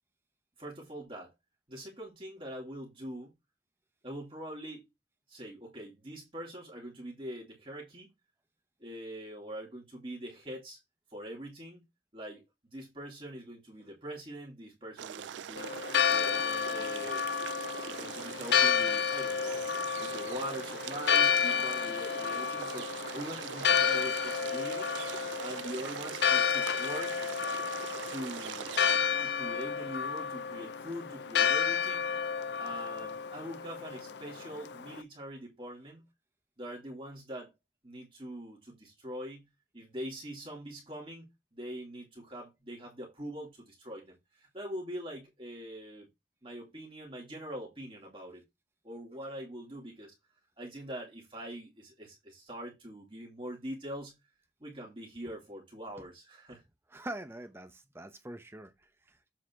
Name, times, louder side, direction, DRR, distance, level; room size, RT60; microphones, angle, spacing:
voice 1, 0.6-1.3 1.7-3.3 4.0-4.9 5.3-8.1 8.8-10.8 11.1-11.8 12.1-12.5 12.7-17.2 17.9-19.7 20.0-24.9 25.4-27.2 28.1-28.7 29.2-32.1 32.6-36.1 36.6-37.5 37.8-39.5 39.7-46.1 46.4-48.4 48.8-50.1 50.6-54.1 54.6-56.6, equal, 30° right, 2.5 m, -43 dB
sound 1, 15.0-29.0, right 9 dB, 90° right, 0.4 m, -42 dB
Church bell, 15.6-35.0, left 7 dB, 70° left, 0.5 m, -31 dB
voice 2, 56.9-59.2, right 1 dB, 15° right, 0.7 m, -44 dB
7.6 x 4.2 x 4.4 m
head